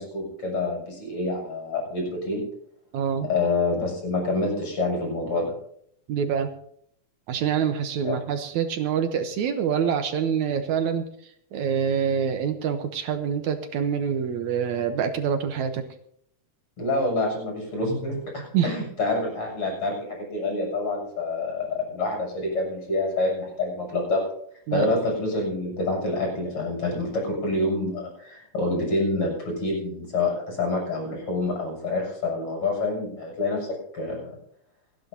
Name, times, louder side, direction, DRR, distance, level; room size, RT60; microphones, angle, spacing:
voice 1, 0.0-2.4 3.2-5.5 8.0-8.2 16.8-24.3 24.7-34.4, left 2 dB, 45° left, 0 dB, 8.3 m, -27 dB
voice 2, 2.9-3.3 6.1-6.5 7.3-11.1 11.5-15.8 18.5-18.7 24.7-24.9, right 7 dB, 75° right, 7 dB, 2.3 m, -26 dB
28.5 x 10.5 x 2.8 m, 0.66 s
omnidirectional pair, 3.6 m